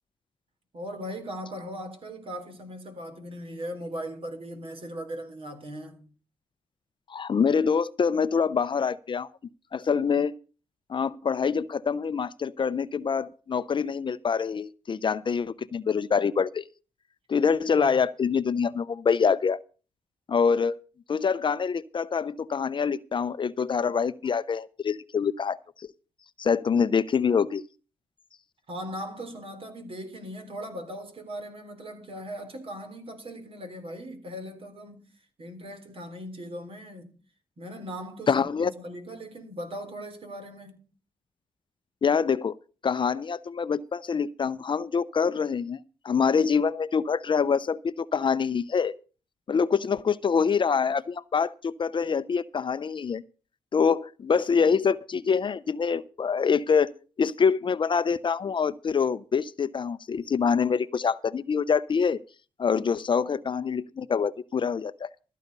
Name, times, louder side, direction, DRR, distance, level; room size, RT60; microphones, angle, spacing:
voice 1, 0.7-6.1 17.8-17.9 28.7-35.1 35.4-37.2 37.6-40.9, equal, 50° right, 3.5 m, -39 dB
voice 2, 7.1-9.3 9.7-10.3 10.9-16.6 17.3-19.6 20.3-20.7 21.1-25.9 26.4-27.6 38.3-38.7 42.0-42.5 42.8-45.8 46.0-48.9 49.5-53.2 53.7-56.9 57.2-62.2 62.6-65.1, left 6 dB, 45° left, 0.7 m, -25 dB
13.5 x 9.3 x 5.4 m
cardioid pair, 80°, 12 cm